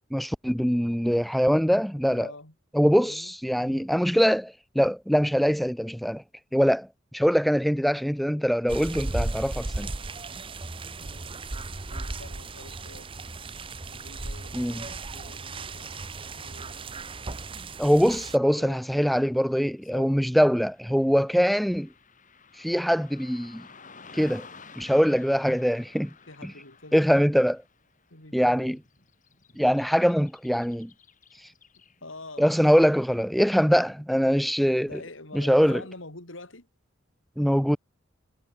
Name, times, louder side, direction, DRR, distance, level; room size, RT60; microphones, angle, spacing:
voice 1, 0.1-2.3 2.7-6.2 6.5-9.9 14.5-14.9 17.8-21.9 22.6-23.6 24.1-24.5 24.8-26.1 26.4-26.5 26.9-27.6 28.3-28.8 29.6-30.9 32.4-35.0 35.3-35.8 37.4-37.8, equal, ahead, 0.5 m, -23 dB
voice 2, 2.1-2.5 2.9-3.3 3.6-3.9 11.0-11.4 11.9-13.1 13.8-16.9 18.5-18.8 19.9-20.1 26.3-27.1 28.1-28.8 32.0-32.5 34.8-36.7, left 2 dB, 85° left, 5.7 m, -46 dB
sound 1, 8.7-18.4, right 2 dB, 25° right, 0.9 m, -36 dB
Car passing by / Traffic noise roadway noise, 18.0-32.3, left 5 dB, 40° left, 7.4 m, -53 dB
head